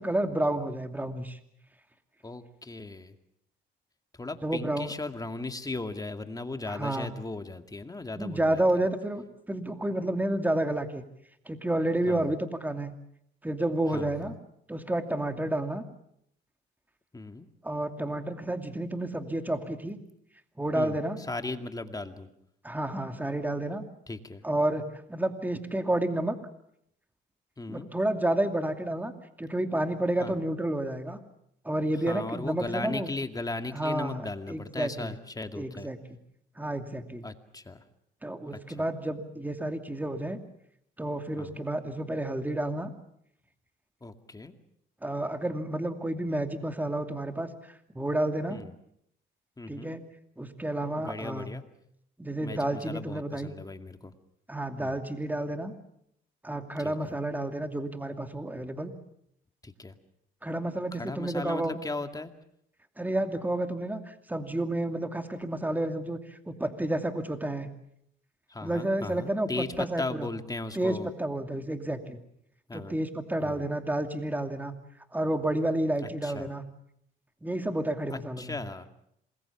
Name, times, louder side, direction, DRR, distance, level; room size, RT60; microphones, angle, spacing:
voice 1, 0.0-1.4 4.4-4.9 6.7-7.1 8.2-11.0 11.5-12.9 13.4-14.3 14.7-15.8 17.6-20.0 20.6-21.2 22.6-23.8 24.4-26.4 27.7-29.1 29.4-31.2 31.6-33.1 33.7-35.1 35.5-36.0 36.6-37.2 38.2-40.4 41.0-42.9 45.0-47.5 47.9-48.6 49.7-50.0 50.4-51.5 52.2-53.5 54.5-55.7 56.4-58.9 60.4-61.8 63.0-67.7 68.6-70.3 70.8-72.2 72.7-74.7 75.1-76.6 77.4-78.6, right 1 dB, 10° right, 6 dB, 2.6 m, -30 dB
voice 2, 2.2-3.2 4.1-8.6 12.1-12.2 13.9-14.3 17.1-17.5 20.7-22.3 24.1-24.4 27.6-27.9 30.2-30.4 32.1-35.9 37.2-37.8 38.5-38.9 41.4-41.5 44.0-44.5 48.5-48.7 49.6-49.9 51.0-51.6 52.4-54.1 54.8-55.0 56.8-57.2 59.6-60.0 60.9-62.3 68.5-71.1 72.7-73.0 73.4-73.7 76.0-76.5 78.1-78.9, left 2 dB, 20° left, 7 dB, 2.3 m, -37 dB
27.0 x 21.5 x 7.2 m, 0.73 s
cardioid pair, 90°, 20 cm